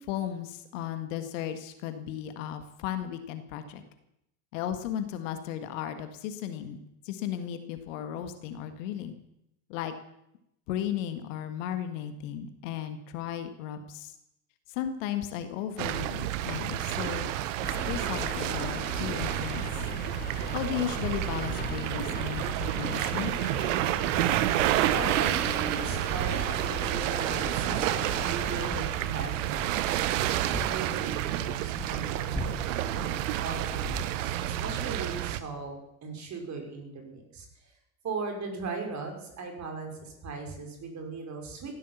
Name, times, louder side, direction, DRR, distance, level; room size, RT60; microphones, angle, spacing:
voice 1, 0.0-3.8 4.5-6.8 7.0-9.1 9.7-9.9 10.7-14.1 14.7-17.3 17.6-19.7 20.5-23.3, left 10 dB, 60° left, 9 dB, 1.9 m, -35 dB
sound 1, 15.8-35.4, right 13 dB, 60° right, 1.1 m, -30 dB
sound 2, 17.6-28.7, left 5 dB, 20° left, 2.2 m, -40 dB
voice 2, 24.9-29.9 30.6-37.7 38.0-41.8, right 4 dB, 40° right, 3 dB, 5.4 m, -38 dB
sound 3, 25.9-34.0, left 1 dB, ahead, 2.1 m, -42 dB
15.5 x 11.5 x 7.4 m, 0.82 s
figure-of-eight pair, 65°, 43 cm